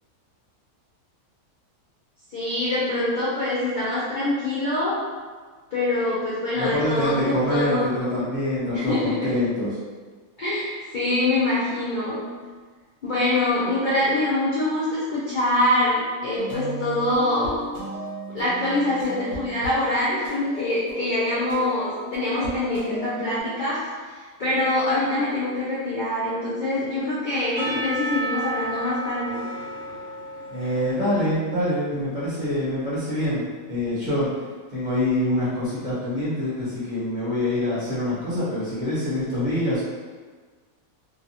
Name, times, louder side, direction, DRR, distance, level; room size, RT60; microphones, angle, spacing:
voice 1, 2.3-5.0 5.7-8.0 8.7-9.3 10.4-12.2 13.0-17.5 18.3-23.8 24.1-29.4, left 1 dB, 50° left, -10 dB, 0.6 m, -24 dB
voice 2, 6.5-9.7 30.5-33.4 33.7-34.3 34.7-39.8, left 1 dB, 35° right, -11 dB, 1.0 m, -25 dB
sound 1, 16.4-23.4, right 1 dB, 80° right, 1.3 m, -36 dB
Percussion / Church bell, 27.6-31.7, right 1 dB, 60° right, 1.4 m, -32 dB
3.1 x 2.3 x 2.7 m, 1.5 s
omnidirectional pair, 1.5 m